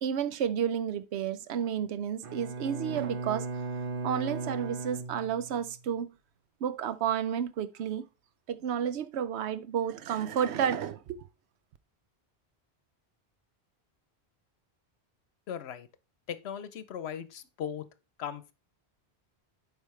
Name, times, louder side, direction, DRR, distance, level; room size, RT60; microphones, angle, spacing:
voice 1, 0.0-3.5 4.0-6.1 6.6-8.1 8.5-11.3, right 8 dB, 85° right, 0.9 m, -31 dB
Bowed string instrument, 2.2-5.8, right 3 dB, 60° right, 0.9 m, -37 dB
voice 2, 15.5-15.9 16.3-17.8 18.2-18.5, left 8 dB, 75° left, 0.9 m, -38 dB
8.2 x 5.1 x 3.2 m
omnidirectional pair, 1.1 m